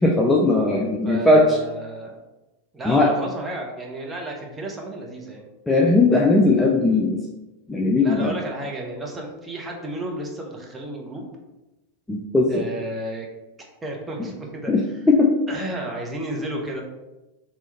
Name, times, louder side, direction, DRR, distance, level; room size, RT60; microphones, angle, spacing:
voice 1, 0.0-1.6 2.9-3.1 5.7-7.2 7.7-8.3 12.1-12.7 14.7-15.3, left 2 dB, 5° left, -1 dB, 0.4 m, -18 dB
voice 2, 0.7-2.1 2.7-5.5 8.0-11.3 12.5-13.3 13.8-14.9 15.5-16.8, right 1 dB, 15° right, -1 dB, 0.9 m, -32 dB
3.7 x 2.9 x 4.2 m, 1.0 s
figure-of-eight pair, 90°, 0 cm